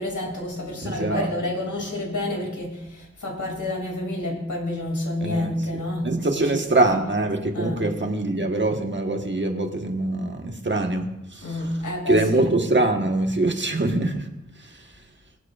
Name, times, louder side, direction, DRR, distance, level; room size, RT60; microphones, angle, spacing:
voice 1, 0.0-7.0 7.5-7.8 11.4-12.5, left 1 dB, 85° left, 0 dB, 2.6 m, -29 dB
voice 2, 0.8-1.3 5.2-11.0 11.3-11.6 12.1-14.3 14.6-14.9, right 2 dB, 40° right, 3 dB, 1.3 m, -24 dB
23.5 x 7.9 x 2.4 m, 0.90 s
wide cardioid pair, 90°, 29 cm